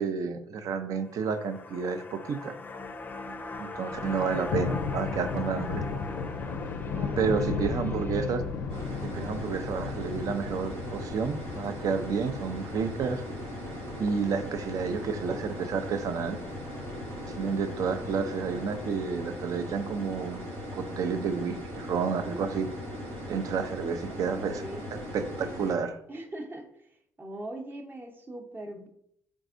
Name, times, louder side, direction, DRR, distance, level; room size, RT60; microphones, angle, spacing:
voice 1, 0.0-2.6 3.6-5.8 7.2-8.4 9.1-13.2 14.0-16.4 17.3-20.4 20.7-22.7 23.3-24.6 25.1-26.0, right 5 dB, 60° right, 9 dB, 0.4 m, -30 dB
sound 1, 1.0-11.4 11.8-11.9, left 3 dB, 25° left, 0.5 m, -42 dB
Thunder, 3.8-19.7, left 5 dB, 80° left, 0.5 m, -37 dB
voice 2, 6.9-8.0 24.1-24.9 26.1-26.9 27.2-28.9, right 1 dB, 30° right, 3 dB, 0.8 m, -41 dB
sound 2, 8.7-25.7, equal, 85° right, 1.1 m, -39 dB
3.9 x 3.5 x 2.5 m, 0.70 s
supercardioid pair, 60°, 7 cm